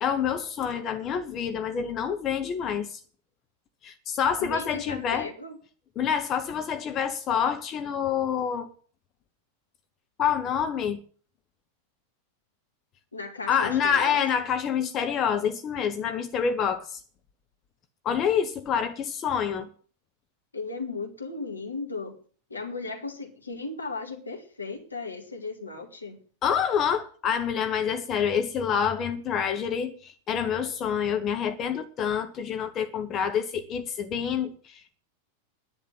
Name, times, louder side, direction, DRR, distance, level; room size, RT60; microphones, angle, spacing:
voice 1, 0.0-3.0 3.8-5.3 6.0-8.7 10.2-11.0 13.5-17.0 18.0-19.7 26.4-35.0, left 7 dB, 30° left, 1.1 m, -27 dB
voice 2, 4.4-5.6 13.1-14.4 20.5-22.2 22.5-26.2, left 3 dB, 80° left, 2.3 m, -36 dB
10.5 x 10.0 x 7.6 m
figure-of-eight pair, 90°, 0 cm